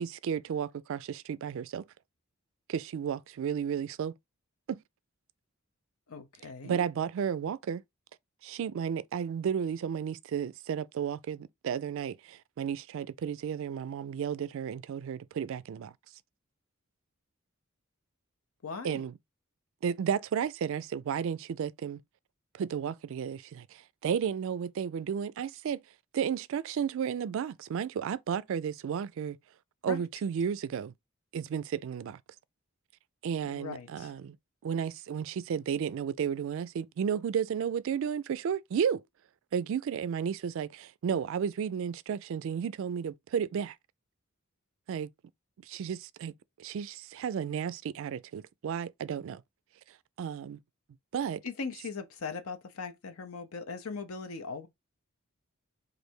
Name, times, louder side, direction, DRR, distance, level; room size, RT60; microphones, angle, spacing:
voice 1, 0.0-1.9 2.7-4.1 4.7-4.8 6.6-7.8 8.4-15.9 18.8-19.1 19.8-22.0 22.5-25.8 26.1-29.4 29.8-30.9 31.3-32.2 33.2-34.4 34.6-39.0 39.5-43.8 44.9-45.1 45.6-46.3 46.6-49.4 50.2-50.6 51.1-51.4, right 7 dB, 65° right, 0.3 m, -33 dB
voice 2, 6.1-6.8 18.6-19.0 29.9-30.0 33.4-34.2 51.4-54.7, left 4 dB, 75° left, 0.6 m, -39 dB
3.2 x 2.5 x 4.4 m
head